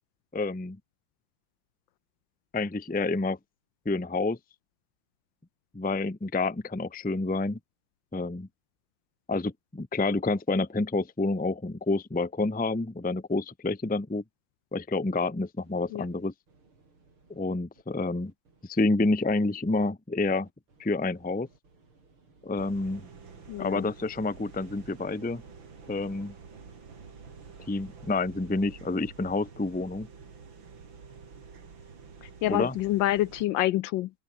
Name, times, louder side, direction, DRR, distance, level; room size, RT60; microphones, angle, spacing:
voice 1, 0.3-0.8 2.5-3.4 3.8-4.4 5.7-7.6 8.1-8.5 9.3-14.2 14.7-16.3 17.3-18.3 18.6-20.5 20.8-21.5 22.4-23.1 23.6-25.4 25.9-26.3 27.7-30.1 32.5-32.7, left 3 dB, 10° left, 0.5 m, -28 dB
sound 1, 15.6-18.7 19.0-19.9 20.4-24.0 24.6-28.2, right 3 dB, 85° right, 5.9 m, -61 dB
sound 2, 22.6-33.5, right 5 dB, 65° right, 3.5 m, -48 dB
voice 2, 23.5-23.9 32.2-34.1, left 15 dB, 75° left, 1.2 m, -27 dB
open air
omnidirectional pair, 2.3 m